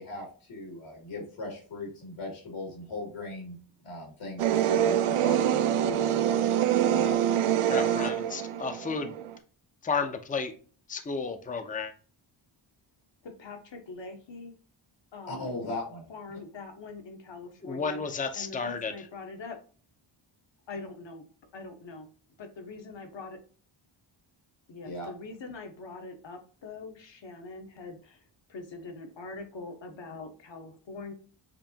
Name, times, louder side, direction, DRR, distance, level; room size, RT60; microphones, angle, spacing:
voice 1, 0.0-3.6 3.8-6.1 6.9-7.1 15.3-16.0 24.8-25.1, left 1 dB, 80° left, 0 dB, 2.5 m, -38 dB
sound 1, 4.4-9.3, right 10 dB, 85° right, 0.6 m, -25 dB
voice 2, 7.7-9.1 9.8-10.5 10.9-11.9 17.6-18.9, left 5 dB, 15° left, 7 dB, 0.5 m, -32 dB
voice 3, 13.2-14.5 15.1-15.5 16.1-18.0 18.3-19.6 20.7-21.3 21.5-22.1 22.4-23.4 24.7-28.2 28.5-31.1, left 3 dB, 60° left, 5 dB, 1.2 m, -43 dB
7.4 x 2.7 x 2.7 m, 0.41 s
wide cardioid pair, 115°, 49 cm